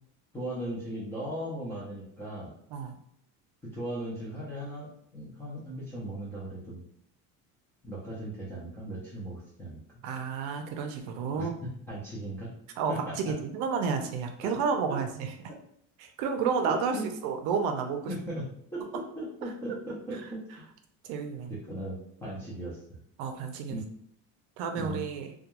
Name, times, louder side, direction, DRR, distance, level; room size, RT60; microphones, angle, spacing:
voice 1, 0.3-2.5 3.6-6.8 7.8-9.8 11.4-11.5 11.9-12.5 12.9-13.3 14.4-14.5 14.9-15.0 15.5-15.6 16.4-17.1 18.1-20.6 21.5-23.0 23.7-23.8 24.7-25.0, right 1 dB, 5° left, -8 dB, 0.3 m, -38 dB
voice 2, 10.0-11.5 12.8-15.3 16.0-18.1 19.4-19.5 20.1-20.2 21.0-21.6 23.2-23.8 24.6-25.3, right 5 dB, 70° right, 5 dB, 0.5 m, -31 dB
2.2 x 2.2 x 2.8 m, 0.69 s
cardioid pair, 170°, 39 cm